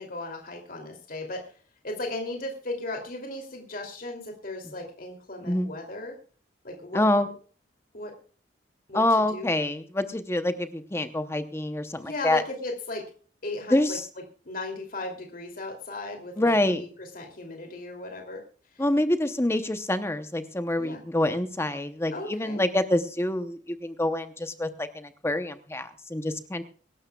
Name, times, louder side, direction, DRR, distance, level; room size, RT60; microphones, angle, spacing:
voice 1, 0.0-1.5 1.8-6.2 6.6-7.0 7.9-8.1 8.9-9.5 12.0-13.1 13.4-14.0 14.4-18.4 18.7-18.8 20.8-21.0 22.1-22.6, left 2 dB, 50° left, 2 dB, 2.8 m, -36 dB
voice 2, 6.9-7.3 8.9-12.4 13.7-14.0 16.4-16.8 18.8-26.6, left 1 dB, 15° left, 9 dB, 0.8 m, -26 dB
24.0 x 12.0 x 2.3 m, 0.41 s
head